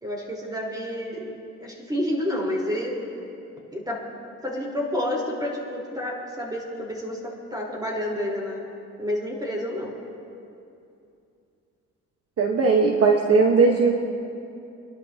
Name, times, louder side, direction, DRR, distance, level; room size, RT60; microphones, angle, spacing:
voice 1, 0.0-3.0 3.7-4.0 4.4-8.6 9.0-9.9, left 1 dB, 15° right, -2 dB, 4.2 m, -29 dB
voice 2, 12.4-13.9, right 4 dB, 50° right, 1 dB, 1.4 m, -18 dB
29.0 x 12.0 x 2.9 m, 2.6 s
cardioid pair, 90°, 30 cm